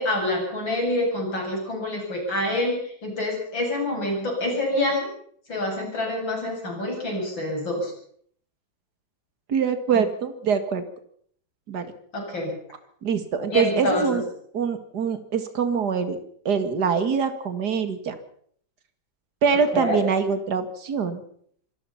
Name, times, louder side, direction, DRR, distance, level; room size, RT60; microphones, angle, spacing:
voice 1, 0.0-5.1 5.5-7.9 12.1-12.5 13.5-14.2 19.7-20.0, left 1 dB, 65° left, 1 dB, 8.6 m, -26 dB
voice 2, 9.5-10.8 11.7-11.9 13.0-14.2 14.5-16.2 16.5-18.2 19.4-21.2, right 6 dB, 50° right, 9 dB, 2.5 m, -24 dB
26.0 x 19.0 x 5.8 m, 0.62 s
omnidirectional pair, 2.2 m